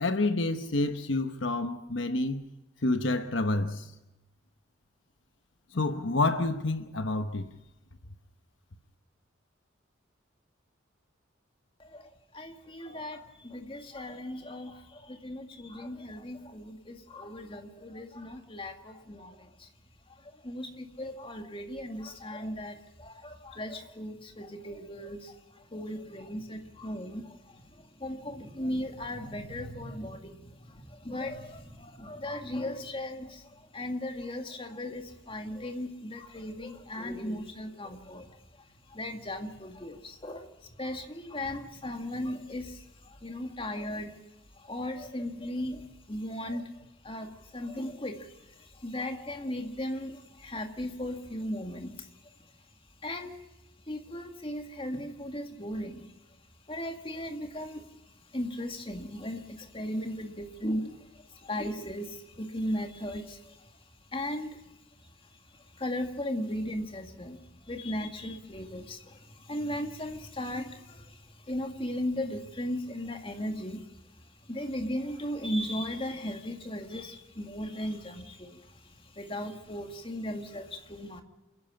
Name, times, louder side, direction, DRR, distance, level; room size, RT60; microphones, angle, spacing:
voice 1, 0.0-2.4 2.8-3.9 5.7-7.6, left 2 dB, 70° left, 1.1 m, -28 dB
voice 2, 11.8-19.7 20.1-44.2 44.6-52.3 53.0-53.4 53.9-56.1 56.7-57.9 58.3-63.7 64.1-64.7 65.0-65.1 65.5-74.0 74.5-81.2, left 1 dB, 25° left, 2.0 m, -37 dB
28.5 x 11.0 x 8.8 m
head